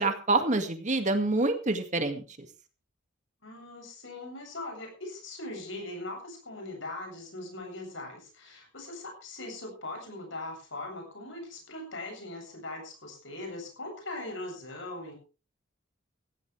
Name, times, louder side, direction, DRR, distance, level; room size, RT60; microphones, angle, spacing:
voice 1, 0.0-2.5, right 2 dB, 40° right, 7 dB, 2.1 m, -27 dB
voice 2, 3.4-15.2, left 2 dB, 70° left, 3 dB, 7.7 m, -40 dB
17.0 x 16.0 x 3.4 m, 0.33 s
head